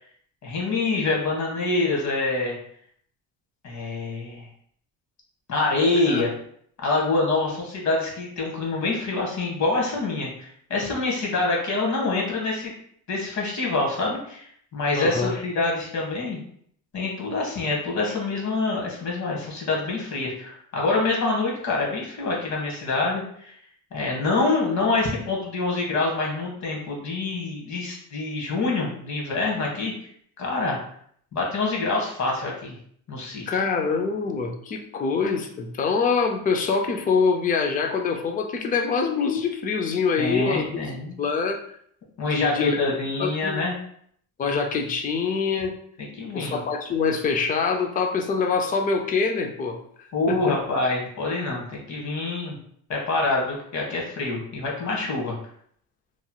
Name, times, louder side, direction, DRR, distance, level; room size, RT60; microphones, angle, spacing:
voice 1, 0.4-2.6 3.6-4.5 5.5-6.3 6.8-12.7 13.1-16.4 16.9-23.6 23.9-29.9 30.4-30.8 31.3-32.7 33.1-33.4 40.2-41.2 42.2-43.7 46.0-46.6 50.1-52.6 52.9-55.3, left 3 dB, 45° left, -1 dB, 1.2 m, -26 dB
voice 2, 15.0-15.3 33.5-40.9 41.2-41.6 42.2-42.8 43.2-43.6 44.4-45.7 46.3-49.8 50.3-50.6, left 5 dB, 20° left, 4 dB, 0.3 m, -25 dB
3.0 x 2.8 x 2.2 m, 0.64 s
cardioid pair, 115°, 41 cm